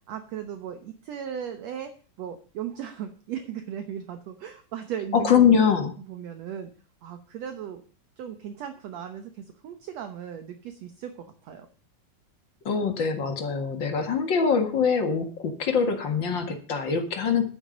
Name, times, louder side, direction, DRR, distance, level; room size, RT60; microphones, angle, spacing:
voice 1, 0.0-5.5 6.1-6.7 7.0-7.8 8.2-11.7, right 9 dB, 65° right, 8 dB, 2.0 m, -37 dB
voice 2, 5.1-5.9 12.7-17.4, left 6 dB, 45° left, 6 dB, 2.1 m, -23 dB
11.0 x 9.9 x 5.2 m, 0.40 s
omnidirectional pair, 3.5 m